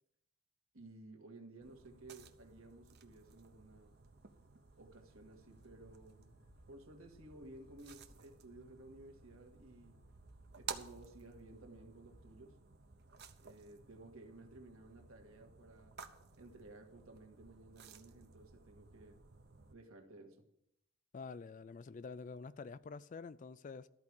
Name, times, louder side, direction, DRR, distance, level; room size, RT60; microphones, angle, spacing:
voice 1, 0.7-4.0 4.8-6.4 6.7-10.0 10.5-12.6 13.4-16.0 16.3-19.2 19.7-20.4, right 2 dB, 70° right, 1.7 m, -56 dB
sound 1, 1.6-19.7, right 6 dB, 50° right, 0.8 m, -55 dB
sound 2, 3.9-12.4, left 2 dB, 70° left, 1.5 m, -68 dB
voice 2, 21.1-23.9, left 4 dB, 35° left, 0.3 m, -48 dB
13.5 x 4.7 x 8.7 m
head